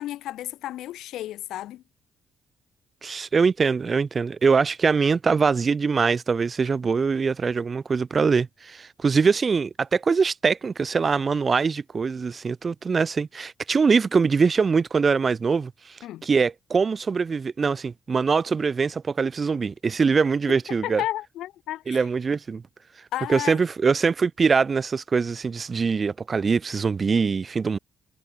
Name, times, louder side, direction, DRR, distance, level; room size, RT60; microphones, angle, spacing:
voice 1, 0.0-1.8 16.0-16.2 20.5-20.6 20.8-22.0 23.1-23.6, left 14 dB, 85° left, 4.7 m, -32 dB
voice 2, 3.0-21.0 21.9-22.6 23.3-27.8, right 5 dB, 35° right, 7.4 m, -23 dB
cardioid pair, 90°, 0 cm